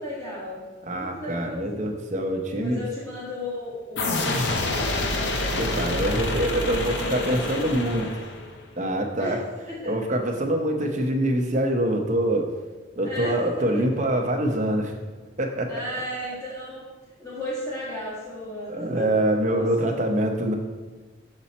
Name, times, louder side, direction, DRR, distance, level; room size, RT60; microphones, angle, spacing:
voice 1, 0.0-1.8 2.6-4.9 6.0-8.1 9.2-9.4 9.7-10.1 13.0-13.3 15.7-16.9 17.2-19.1 19.6-20.0, left 1 dB, 15° left, -10 dB, 1.7 m, -35 dB
voice 2, 0.8-2.8 5.6-8.1 8.8-9.4 9.8-12.5 13.0-14.9 15.4-15.7 18.7-20.5, right 1 dB, 40° right, 3 dB, 0.7 m, -25 dB
sound 1, 4.0-8.6, left 2 dB, 60° left, 0.7 m, -27 dB
6.9 x 4.2 x 4.2 m, 1.3 s
head